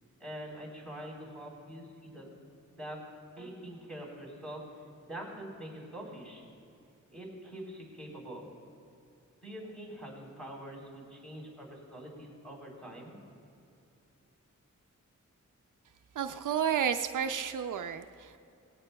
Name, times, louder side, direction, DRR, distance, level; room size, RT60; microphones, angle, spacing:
voice 1, 0.2-2.3 2.7-3.0 3.4-6.4 7.1-8.5 9.4-13.2, right 1 dB, 5° left, -3 dB, 3.6 m, -44 dB
voice 2, 16.2-18.4, right 8 dB, 80° right, 8 dB, 0.5 m, -31 dB
18.5 x 16.5 x 2.3 m, 2.7 s
wide cardioid pair, 120°, 31 cm